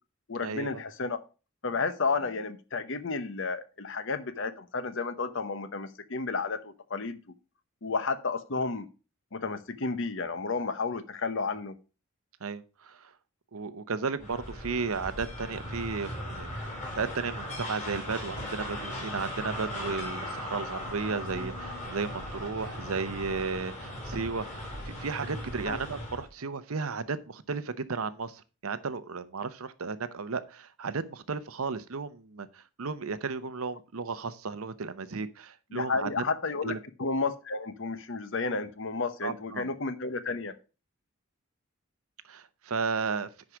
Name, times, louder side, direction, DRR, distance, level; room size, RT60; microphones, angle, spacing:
voice 1, 0.3-1.2 1.6-7.2 7.8-8.9 9.3-11.7 25.6-25.8 35.7-36.7 37.0-40.5, left 4 dB, 60° left, 12 dB, 0.9 m, -32 dB
voice 2, 12.4-13.1 13.5-16.5 16.9-36.2 36.6-36.8 39.2-39.7 42.3-43.3, right 4 dB, 75° right, 13 dB, 0.8 m, -34 dB
sound 1, 14.2-26.3, left 1 dB, 30° left, 4.3 m, -38 dB
10.5 x 4.9 x 4.9 m, 0.33 s
head